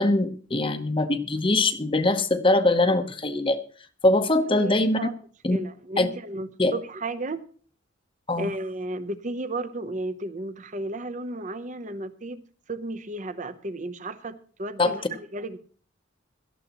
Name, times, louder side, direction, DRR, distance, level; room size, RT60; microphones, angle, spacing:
voice 1, 0.0-3.6 4.0-5.0 5.4-5.6 6.0-6.1 6.6-6.7 8.3-8.5 14.8-14.9, left 2 dB, 25° left, 8 dB, 0.9 m, -22 dB
voice 2, 4.6-5.1 5.5-7.4 8.4-12.4 12.7-15.6, right 2 dB, 40° right, 12 dB, 0.8 m, -33 dB
17.5 x 13.5 x 3.0 m, 0.44 s
head